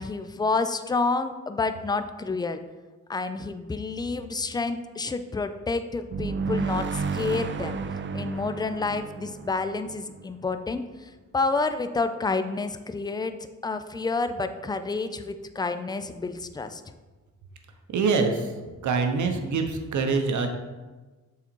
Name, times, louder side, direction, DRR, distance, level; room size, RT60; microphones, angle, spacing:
voice 1, 0.0-2.6 3.1-7.8 8.1-13.4 13.6-16.8, left 3 dB, 15° left, 10 dB, 0.4 m, -29 dB
sound 1, 6.1-10.7, right 4 dB, 40° right, 0.5 m, -32 dB
voice 2, 17.9-18.5 18.8-20.5, right 4 dB, 70° right, 5 dB, 1.0 m, -24 dB
7.1 x 4.0 x 4.5 m, 1.3 s
cardioid pair, 80°, 31 cm